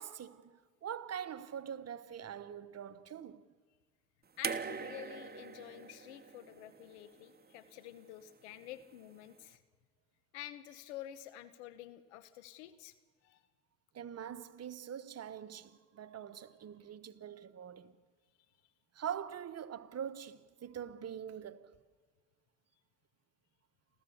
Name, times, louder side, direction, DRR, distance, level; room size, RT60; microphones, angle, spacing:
voice 1, 0.0-3.4 13.9-17.9 18.9-21.8, right 9 dB, 50° right, 1.2 m, -44 dB
voice 2, 4.4-9.6 10.3-12.9 13.2-13.4, left 12 dB, 90° left, 1.1 m, -49 dB
sound 1, 4.4-7.6 8.8-8.9, right 6 dB, 30° right, 1.3 m, -42 dB
30.0 x 14.0 x 7.1 m
hypercardioid pair, 60°, 33 cm